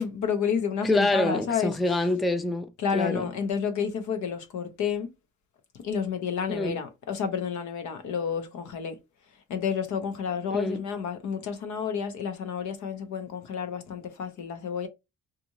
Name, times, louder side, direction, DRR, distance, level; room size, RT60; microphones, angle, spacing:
voice 1, 0.0-1.8 2.8-5.1 5.7-9.0 9.5-14.9, left 7 dB, 70° left, 0.8 m, -30 dB
voice 2, 0.8-3.2 6.5-6.8 10.5-10.8, left 2 dB, ahead, 0.4 m, -26 dB
2.6 x 2.5 x 2.9 m
cardioid pair, 90°, 30 cm